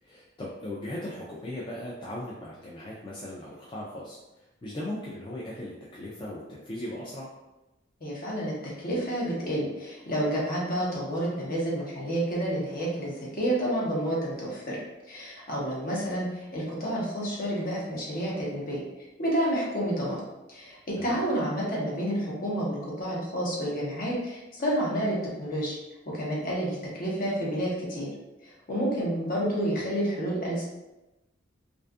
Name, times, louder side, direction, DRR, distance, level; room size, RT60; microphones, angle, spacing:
voice 1, 0.0-7.3 21.0-21.2, left 1 dB, 25° left, -6 dB, 0.3 m, -38 dB
voice 2, 8.0-14.8 15.1-18.8 19.2-20.2 20.5-25.7 26.1-28.1 28.4-30.6, right 1 dB, 50° left, -5 dB, 0.8 m, -29 dB
2.5 x 2.3 x 2.3 m, 1.0 s
head